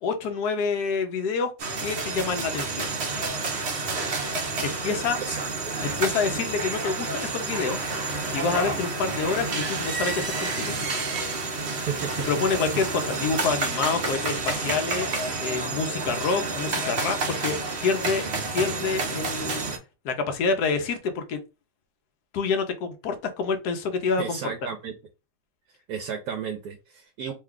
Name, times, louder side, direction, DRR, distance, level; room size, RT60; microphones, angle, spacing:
voice 1, 0.0-1.5 1.8-2.9 4.6-5.2 5.8-7.9 8.3-10.7 12.3-15.1 15.4-18.2 18.5-19.6 20.0-21.4 22.3-24.5, left 5 dB, 75° left, 1.2 m, -27 dB
sound 1, 1.6-19.8, right 3 dB, 55° right, 0.7 m, -29 dB
voice 2, 5.2-5.7 11.7-12.3 24.2-24.9 25.9-27.3, right 7 dB, 75° right, 1.0 m, -33 dB
3.1 x 2.3 x 3.6 m
omnidirectional pair, 1.8 m